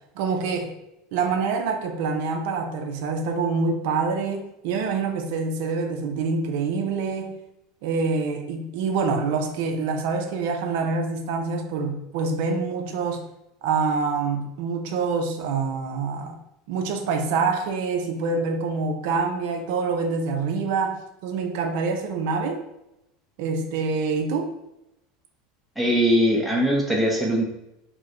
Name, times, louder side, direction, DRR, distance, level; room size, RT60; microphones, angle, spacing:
voice 1, 0.2-0.7 1.1-7.4 7.8-13.2 13.6-16.4 16.7-22.6 23.4-24.5, right 4 dB, 55° right, 4 dB, 0.5 m, -26 dB
voice 2, 25.8-27.5, equal, ahead, -3 dB, 0.5 m, -21 dB
4.4 x 2.0 x 2.5 m, 0.88 s
supercardioid pair, 170°, 0 cm